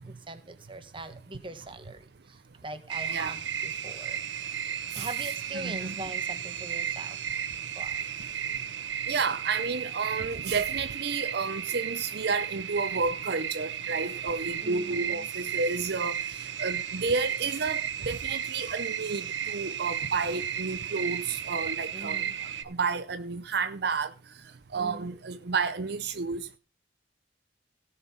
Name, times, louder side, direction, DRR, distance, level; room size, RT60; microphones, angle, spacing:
voice 1, 0.0-4.2 4.9-7.2 7.7-8.0 14.6-15.3 21.3-21.4 21.9-22.4 24.7-25.1, right 2 dB, 30° right, 1.5 m, -42 dB
sound 1, 2.9-22.6, right 8 dB, 80° right, 1.2 m, -34 dB
voice 2, 5.5-5.9 9.1-22.2 22.6-24.1 24.7-26.6, right 4 dB, 60° right, 0.7 m, -31 dB
17.0 x 5.8 x 5.8 m
head